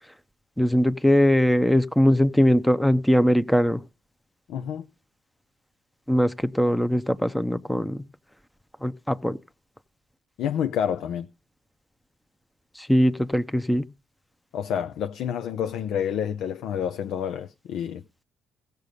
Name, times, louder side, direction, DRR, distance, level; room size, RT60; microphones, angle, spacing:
voice 1, 0.6-3.8 6.1-8.0 8.8-9.4 12.8-13.8, equal, 5° left, 0.8 m, -21 dB
voice 2, 4.5-4.9 10.4-11.3 14.5-18.0, left 8 dB, 70° left, 0.7 m, -28 dB
16.0 x 6.9 x 5.3 m
supercardioid pair, 65°, 0 cm